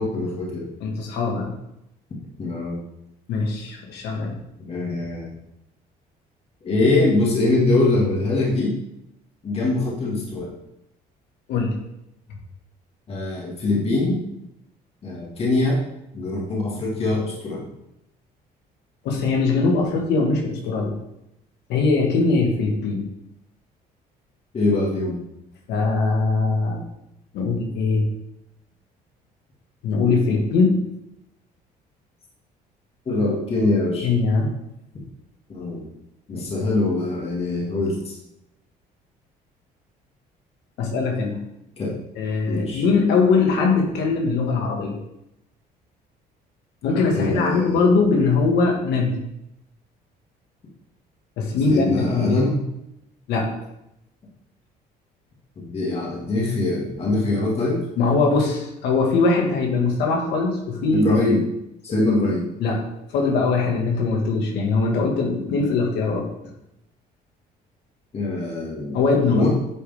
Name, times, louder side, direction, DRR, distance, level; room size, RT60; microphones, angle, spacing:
voice 1, 0.0-0.6 2.4-2.8 4.7-5.3 6.6-8.7 9.4-10.5 13.1-14.2 15.0-15.8 16.1-17.7 24.5-25.2 33.1-34.1 35.5-35.8 36.3-38.2 41.8-41.9 42.5-42.8 47.1-48.0 51.7-52.6 55.6-57.8 60.9-61.4 61.8-62.5 68.1-69.0 69.3-69.5, left 2 dB, 35° left, -4 dB, 2.4 m, -23 dB
voice 2, 0.8-1.5 3.3-4.4 11.5-11.8 19.0-21.0 21.7-23.1 25.7-26.8 27.3-28.1 29.8-30.8 34.0-34.5 36.3-36.5 40.8-41.4 42.2-45.0 46.8-49.2 51.4-52.4 53.3-53.6 58.0-61.1 62.6-62.8 63.1-66.3 68.9-69.4, left 4 dB, 85° left, 1 dB, 1.9 m, -21 dB
9.8 x 5.1 x 3.6 m, 0.82 s
cardioid pair, 110°, 17 cm